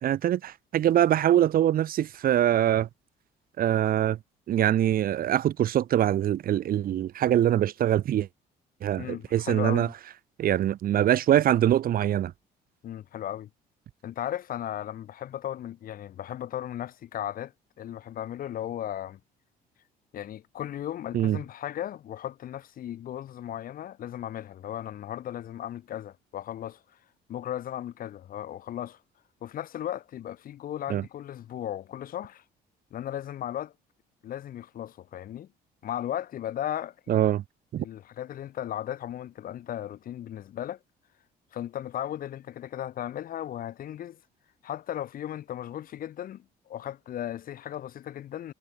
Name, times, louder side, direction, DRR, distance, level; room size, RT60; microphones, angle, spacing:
voice 1, 0.0-2.9 3.6-4.2 4.5-8.3 8.8-9.9 10.4-12.3 21.1-21.4 30.9-31.0 37.1-37.4 37.7-37.8, right 11 dB, 60° right, 2.0 m, -23 dB
voice 2, 9.0-9.9 12.8-13.5 14.0-19.2 20.1-26.8 27.3-29.0 29.4-32.4 32.9-33.7 34.2-35.5 35.8-37.3 37.8-40.8 41.5-44.2 44.6-48.5, left 11 dB, 60° left, 2.0 m, -36 dB
cardioid pair, 110°, 17 cm